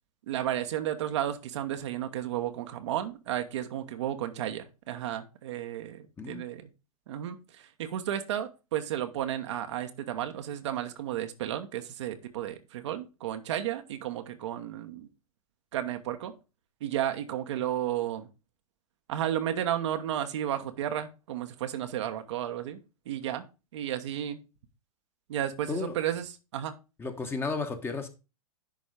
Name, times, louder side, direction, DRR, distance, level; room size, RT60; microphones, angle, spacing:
voice 1, 0.3-6.7 7.1-15.1 15.7-16.3 16.8-18.3 19.1-22.8 23.1-23.4 23.7-24.4 25.3-26.3 26.5-26.7, right 11 dB, 50° right, 1.1 m, -33 dB
voice 2, 27.0-28.1, left 4 dB, 10° left, 1.2 m, -33 dB
10.5 x 4.1 x 5.1 m
figure-of-eight pair, 105°, 19 cm